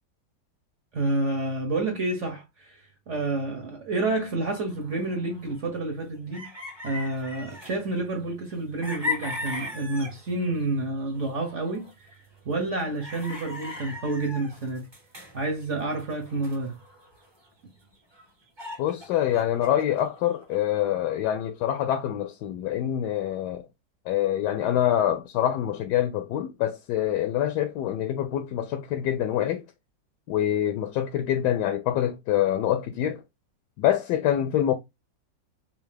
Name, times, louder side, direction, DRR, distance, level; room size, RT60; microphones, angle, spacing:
voice 1, 0.9-6.5 6.8-14.9 15.3-16.8, right 2 dB, 50° right, 1.0 m, -29 dB
sound 1, 4.5-5.6 6.0-6.1 6.3-8.0 8.5-10.8 11.0-12.1 12.7-17.5 17.8-17.9 18.1-20.6, left 3 dB, 20° right, 0.7 m, -38 dB
voice 2, 18.8-23.6 24.1-29.6 30.3-33.2 33.8-34.7, left 11 dB, 75° left, 1.1 m, -25 dB
3.6 x 2.7 x 3.2 m
omnidirectional pair, 2.0 m